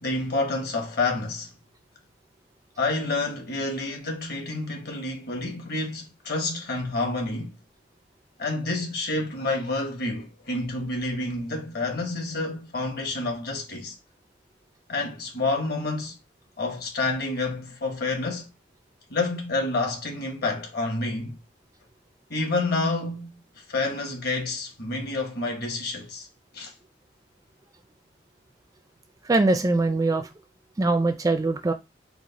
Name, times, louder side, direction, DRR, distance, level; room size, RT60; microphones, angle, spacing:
voice 1, 0.0-1.5 2.8-7.6 8.4-14.0 14.9-16.1 16.6-18.5 19.1-21.4 22.3-23.4 23.7-26.3 26.5-26.7, left 2 dB, 55° left, 1.2 m, -28 dB
voice 2, 29.2-30.3 30.8-31.7, right 2 dB, 20° right, 0.3 m, -22 dB
4.7 x 2.1 x 3.9 m
head